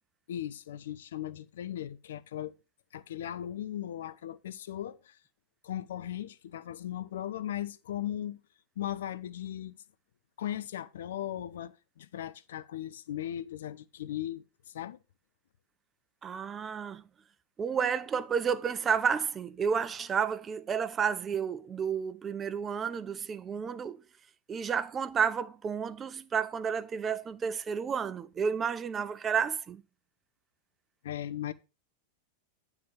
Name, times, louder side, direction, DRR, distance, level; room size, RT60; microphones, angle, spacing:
voice 1, 0.3-2.5 2.9-5.2 5.6-8.4 8.8-9.8 10.4-15.0 31.0-31.5, left 11 dB, 60° left, 0.5 m, -38 dB
voice 2, 16.2-17.0 17.6-24.0 24.5-29.8, right 7 dB, 20° right, 0.4 m, -31 dB
9.3 x 3.7 x 5.9 m
figure-of-eight pair, 90°, 0 cm